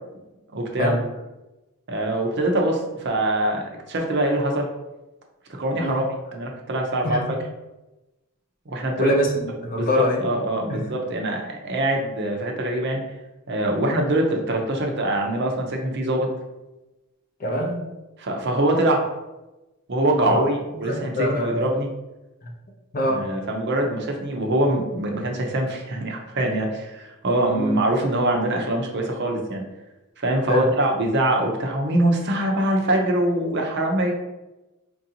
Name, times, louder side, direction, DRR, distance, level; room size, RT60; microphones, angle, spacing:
voice 1, 0.5-0.9 1.9-4.7 5.5-6.0 6.3-7.2 8.7-9.1 9.7-13.0 13.5-16.3 18.2-19.0 19.9-21.9 23.1-29.6 30.2-34.1, right 1 dB, 50° right, 1 dB, 0.6 m, -23 dB
voice 2, 9.0-10.2 10.7-10.9 17.4-17.8 20.1-20.4 20.7-21.7 22.9-23.3 27.5-27.8 30.5-30.7, equal, 40° left, 1 dB, 0.6 m, -24 dB
4.5 x 2.6 x 2.8 m, 1.0 s
head